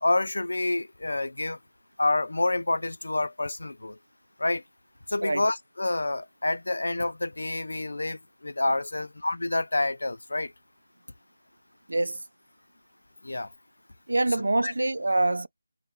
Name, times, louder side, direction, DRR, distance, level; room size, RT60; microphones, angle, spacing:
voice 1, 0.0-1.6 2.0-4.0 4.4-4.6 5.1-10.5 13.2-13.5 14.6-14.7, left 2 dB, 85° left, 0.3 m, -28 dB
voice 2, 11.9-12.2 14.1-15.5, right 2 dB, 85° right, 0.4 m, -25 dB
5.1 x 2.0 x 2.9 m
figure-of-eight pair, 175°, 0 cm